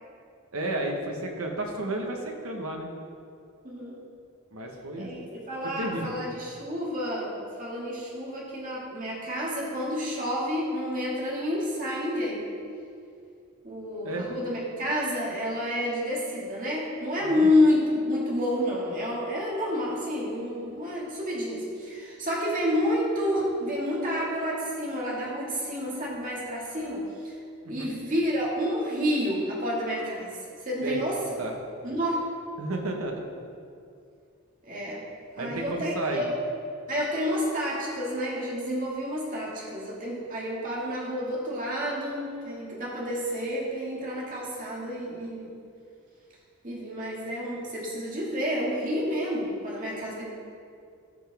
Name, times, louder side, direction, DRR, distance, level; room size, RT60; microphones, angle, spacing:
voice 1, 0.5-2.9 4.5-5.1 5.8-6.2 14.0-14.3 17.2-17.5 27.6-27.9 30.8-31.0 31.4-31.5 32.6-33.2 35.4-36.3, right 1 dB, 80° right, 2 dB, 1.3 m, -32 dB
voice 2, 3.6-4.0 4.9-12.5 13.6-27.4 27.7-31.2 31.8-32.3 34.6-35.0 35.3-36.4 36.9-45.5 46.6-50.2, left 1 dB, 40° right, -5 dB, 2.1 m, -29 dB
14.5 x 5.9 x 3.5 m, 2.4 s
head